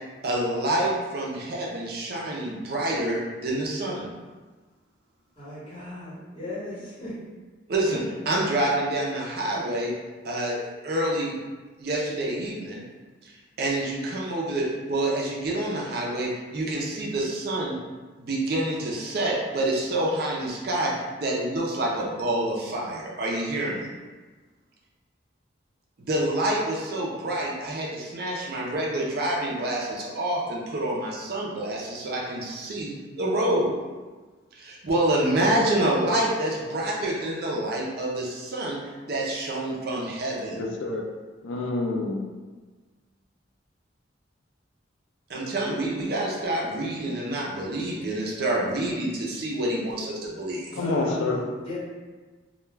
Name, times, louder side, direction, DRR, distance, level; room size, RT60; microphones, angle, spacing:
voice 1, 0.2-4.1 7.7-9.9 10.2-10.6 10.8-11.4 11.8-12.8 13.2-13.3 13.6-17.8 18.2-20.9 21.2-23.9 26.0-33.7 34.6-38.8 39.1-40.6 45.3-50.7, right 1 dB, 55° right, -3 dB, 0.5 m, -27 dB
voice 2, 5.4-7.2 50.7-51.8, left 1 dB, 30° left, -11 dB, 1.1 m, -36 dB
voice 3, 40.5-41.1 41.4-42.3 50.8-51.4, left 3 dB, 85° left, 1 dB, 0.3 m, -27 dB
2.2 x 2.2 x 3.1 m, 1.3 s
head